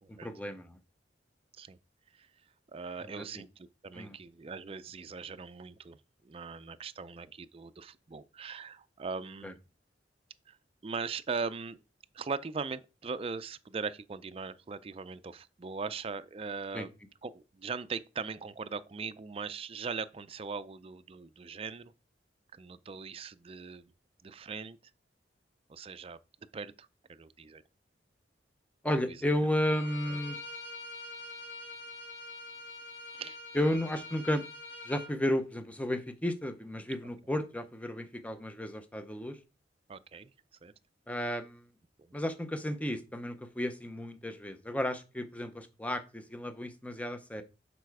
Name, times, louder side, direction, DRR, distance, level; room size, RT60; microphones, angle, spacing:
voice 1, 0.2-0.8 3.2-3.4 3.9-4.2 9.4-9.5 16.7-16.9 28.8-30.4 33.5-34.4 34.9-39.4 41.1-41.6 42.1-47.4, left 1 dB, 10° left, 0.7 m, -33 dB
voice 2, 2.7-6.0 6.2-9.6 10.5-10.6 10.8-11.8 12.1-16.9 17.2-21.9 22.5-23.9 24.2-24.8 25.7-26.2 26.5-27.6 29.1-29.2 30.1-30.2 33.1-33.4 39.9-40.3 40.6-40.7 42.0-42.1, right 5 dB, 30° right, 0.4 m, -40 dB
Bowed string instrument, 29.6-35.1, left 2 dB, 80° left, 2.1 m, -45 dB
6.9 x 4.2 x 4.7 m
head